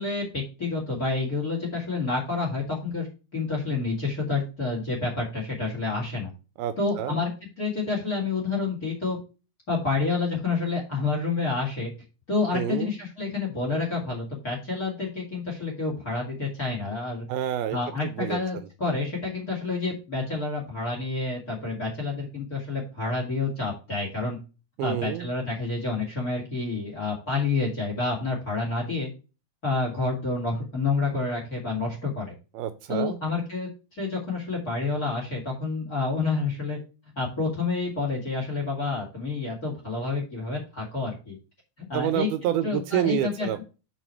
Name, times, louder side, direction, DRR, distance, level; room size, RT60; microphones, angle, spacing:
voice 1, 0.0-3.1 3.3-6.3 6.8-7.3 7.6-9.2 9.7-11.9 12.3-17.2 17.7-24.4 24.8-29.1 29.6-32.3 32.9-36.8 37.2-41.4 41.8-42.3 42.6-43.6, left 3 dB, 30° left, 2 dB, 2.1 m, -29 dB
voice 2, 6.6-7.2 12.5-12.9 17.3-18.7 24.8-25.3 32.5-33.2 41.9-43.6, right 11 dB, 80° right, 11 dB, 2.3 m, -28 dB
6.4 x 6.0 x 4.6 m, 0.32 s
omnidirectional pair, 4.5 m